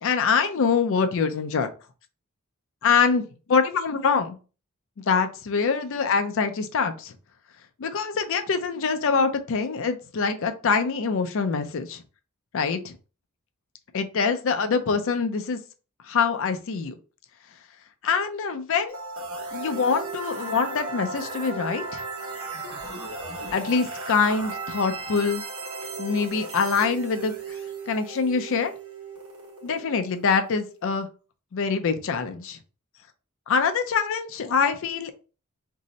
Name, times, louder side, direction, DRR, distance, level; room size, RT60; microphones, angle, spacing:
voice 1, 0.0-1.7 2.8-4.4 5.0-7.1 7.8-12.0 12.5-13.0 13.9-15.6 16.1-16.9 18.0-19.0 19.5-22.0 23.5-25.4 26.0-27.3 27.9-28.7 29.6-31.1 31.5-32.6 33.5-35.1, left 5 dB, 60° left, 8 dB, 0.4 m, -24 dB
sound 1, 18.9-30.7, right 3 dB, 75° right, 1.1 m, -36 dB
2.6 x 2.0 x 3.9 m, 0.35 s
head